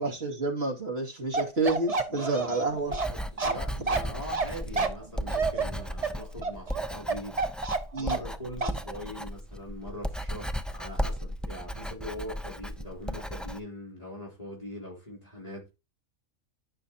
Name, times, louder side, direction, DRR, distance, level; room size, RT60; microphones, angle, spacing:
voice 1, 0.0-2.9 7.9-8.2, right 3 dB, 50° right, 2.6 m, -29 dB
Bark, 1.3-8.3 8.6-8.8, right 4 dB, 30° right, 1.0 m, -29 dB
voice 2, 2.1-7.5 8.0-15.7, left 1 dB, 30° left, 3.7 m, -42 dB
Writing, 2.8-13.6, equal, ahead, 0.3 m, -36 dB
13.5 x 6.5 x 2.9 m
omnidirectional pair, 1.4 m